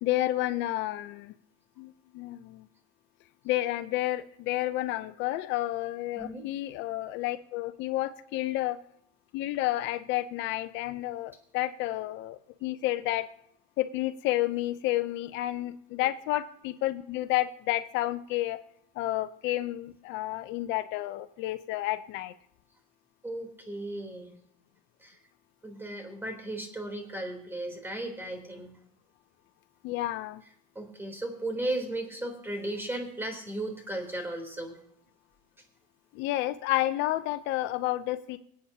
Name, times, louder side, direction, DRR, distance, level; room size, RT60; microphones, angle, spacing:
voice 1, 0.0-1.3 1.8-2.6 3.4-8.8 9.3-13.3 13.8-18.6 19.0-22.3 29.8-30.4 36.1-38.4, left 15 dB, 65° left, 13 dB, 0.7 m, -30 dB
voice 2, 16.0-16.4 23.2-24.3 25.0-25.2 25.6-28.7 30.7-34.7, right 1 dB, 10° right, 3 dB, 3.5 m, -36 dB
25.5 x 8.7 x 2.8 m, 0.74 s
supercardioid pair, 115°, 21 cm